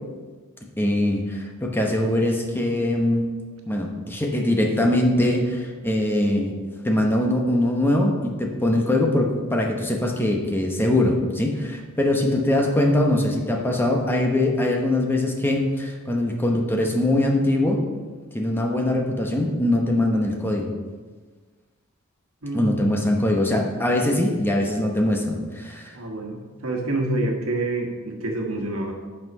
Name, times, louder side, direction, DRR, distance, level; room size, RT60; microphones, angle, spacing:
voice 1, 0.8-3.3 3.7-6.6 6.8-17.8 18.3-20.7 22.5-25.9, left 1 dB, 10° left, 1 dB, 1.0 m, -22 dB
voice 2, 22.4-22.7 25.9-28.9, right 2 dB, 75° right, 1 dB, 1.5 m, -27 dB
8.9 x 5.7 x 5.4 m, 1.4 s
head